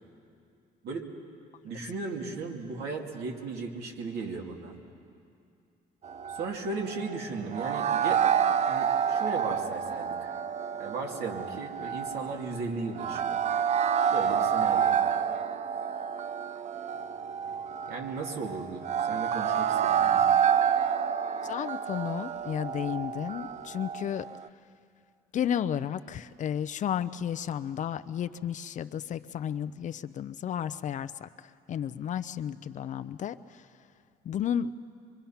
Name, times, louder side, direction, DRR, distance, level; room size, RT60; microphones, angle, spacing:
voice 1, 1.6-4.8 6.3-8.2 8.7-10.3 10.8-13.4 14.1-15.0 17.9-20.3, right 4 dB, 75° right, 1 dB, 2.6 m, -36 dB
sound 1, 6.0-24.5, right 8 dB, 40° right, 0.5 m, -29 dB
voice 2, 21.4-24.2 25.3-31.3 31.7-33.3 34.3-34.7, left 9 dB, 45° left, 11 dB, 0.6 m, -32 dB
24.5 x 23.5 x 5.8 m, 2.4 s
cardioid pair, 110°, 17 cm